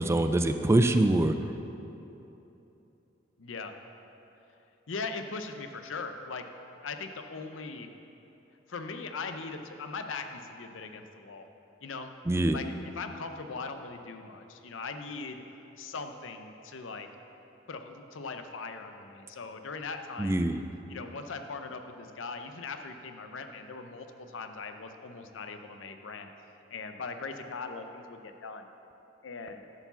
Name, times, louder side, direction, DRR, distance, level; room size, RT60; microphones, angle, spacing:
voice 1, 0.0-1.4 12.3-12.6 20.2-20.6, right 1 dB, 15° right, 7 dB, 0.3 m, -24 dB
voice 2, 3.4-3.7 4.9-6.4 6.8-7.9 8.7-11.5 11.8-12.1 12.5-15.4 15.8-17.1 17.7-20.4 20.9-26.3 26.7-28.7 29.2-29.6, left 4 dB, 90° left, 6 dB, 0.7 m, -40 dB
11.0 x 4.7 x 6.9 m, 2.9 s
head